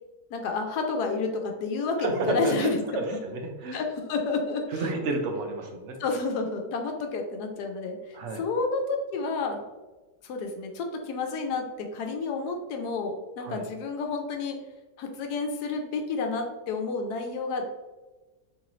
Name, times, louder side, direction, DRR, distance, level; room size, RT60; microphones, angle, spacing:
voice 1, 0.3-2.8 3.7-4.7 6.0-8.0 8.3-9.6 10.2-14.6 15.0-17.7, left 4 dB, 80° left, 3 dB, 1.2 m, -30 dB
voice 2, 2.0-3.8 4.7-6.0 7.9-8.4 13.4-13.6, right 3 dB, 65° right, 3 dB, 0.7 m, -31 dB
3.8 x 3.1 x 3.0 m, 1.2 s
omnidirectional pair, 1.7 m